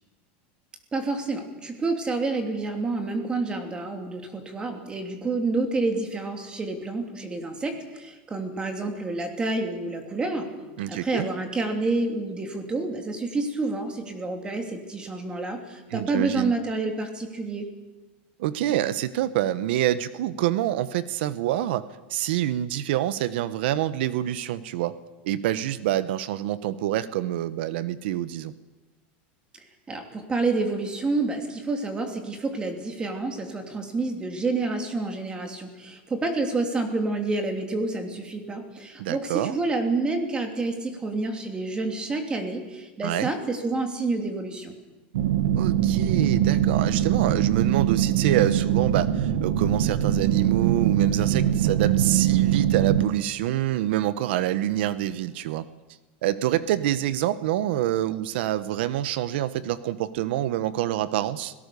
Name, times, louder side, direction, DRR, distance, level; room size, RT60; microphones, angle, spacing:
voice 1, 0.9-10.5 10.9-17.7 29.9-44.7, right 3 dB, 15° right, 5 dB, 2.9 m, -28 dB
voice 2, 10.8-11.3 15.9-16.5 18.4-25.0 25.2-28.5 39.0-39.5 43.0-43.3 45.6-55.7 56.2-61.5, right 13 dB, 70° right, 15 dB, 1.0 m, -26 dB
sound 1, 45.1-53.1, right 10 dB, 90° right, 1.6 m, -22 dB
24.5 x 18.0 x 6.9 m, 1.2 s
supercardioid pair, 155°, 6 cm